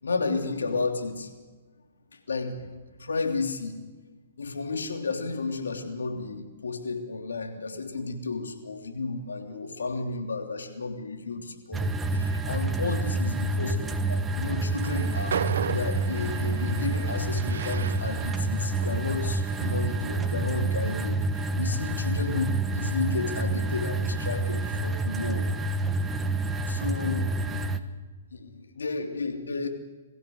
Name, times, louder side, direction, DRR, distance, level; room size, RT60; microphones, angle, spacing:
voice 1, 0.0-1.3 2.1-3.8 4.4-25.5 26.7-27.7 28.3-29.7, left 4 dB, 85° left, 4 dB, 3.2 m, -32 dB
sound 1, 11.7-27.8, right 2 dB, 15° right, 1.3 m, -28 dB
Train, 14.7-20.0, right 7 dB, 75° right, 0.7 m, -36 dB
23.5 x 15.5 x 8.0 m, 1.3 s
hypercardioid pair, 130°, 0 cm